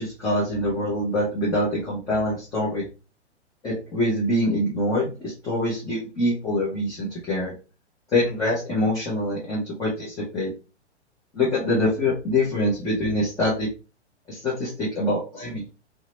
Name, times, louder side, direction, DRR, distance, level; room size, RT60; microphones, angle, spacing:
voice 1, 0.0-2.9 3.6-7.5 8.1-10.5 11.3-13.7 14.3-15.7, left 1 dB, 10° left, -7 dB, 0.7 m, -25 dB
2.8 x 2.2 x 2.9 m, 0.32 s
figure-of-eight pair, 110°, 35 cm